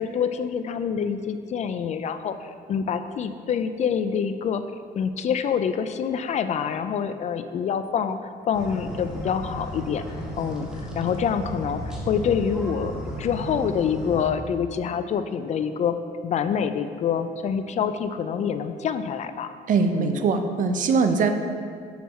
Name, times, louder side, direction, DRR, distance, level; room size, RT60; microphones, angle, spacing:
voice 1, 0.0-4.6 5.0-10.7 10.9-15.9 16.2-19.5 19.9-20.3, left 7 dB, 45° left, 10 dB, 0.4 m, -26 dB
sound 1, 8.5-14.3, equal, 5° right, 1.1 m, -34 dB
voice 2, 19.7-21.3, right 5 dB, 50° right, 7 dB, 0.6 m, -22 dB
6.0 x 5.5 x 4.2 m, 2.2 s
cardioid pair, 110°, 17 cm